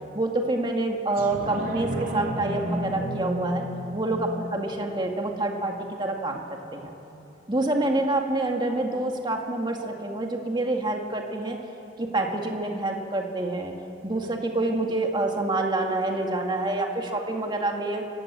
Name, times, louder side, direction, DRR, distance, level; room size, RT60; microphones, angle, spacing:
voice 1, 0.1-3.7 3.9-6.9 7.5-11.6 12.0-13.7 14.0-18.0, right 2 dB, 25° right, 2 dB, 2.2 m, -27 dB
sound 1, 1.2-6.2 6.6-6.7, equal, 50° right, 2.7 m, -33 dB
29.0 x 17.0 x 7.7 m, 2.9 s
head